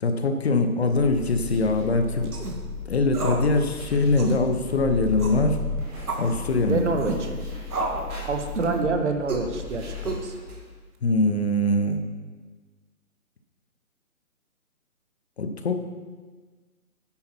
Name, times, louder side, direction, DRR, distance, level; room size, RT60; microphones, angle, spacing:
voice 1, 0.0-2.3 2.9-5.6 6.2-6.8 11.0-12.0 15.4-15.7, left 2 dB, 45° left, 7 dB, 0.9 m, -22 dB
sound 1, 0.8-10.7, left 3 dB, 10° right, 1.5 m, -35 dB
sound 2, 2.2-2.6 3.1-3.5 3.7-3.8 4.2-4.4 5.2-5.5 6.1-6.3 7.0-7.2 7.7-8.1 8.6-8.8 9.3-9.5 10.0-10.5, right 3 dB, 85° right, 2.0 m, -30 dB
voice 2, 6.6-7.3 8.2-10.3, right 4 dB, 50° right, 5 dB, 1.4 m, -27 dB
9.6 x 8.5 x 4.5 m, 1.4 s
hypercardioid pair, 160°, 44 cm